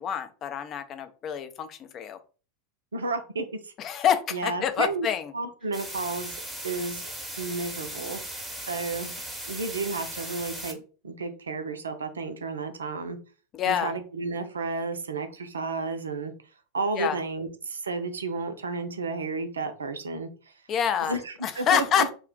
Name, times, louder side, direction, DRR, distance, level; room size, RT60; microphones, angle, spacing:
voice 1, 0.0-2.2 3.8-5.3 13.5-13.9 17.0-17.2 20.7-22.1, left 9 dB, 35° left, 0.4 m, -27 dB
voice 2, 2.9-3.7 4.3-5.1 5.3-6.4 6.6-7.1 7.4-8.2 8.7-9.1 9.5-10.8 11.0-13.2 13.7-16.3 16.7-20.3 21.1-21.8, right 3 dB, 70° right, 0.4 m, -32 dB
sound 1, 5.7-10.7, right 1 dB, ahead, 0.8 m, -38 dB
2.4 x 2.1 x 3.6 m
figure-of-eight pair, 85°, 0 cm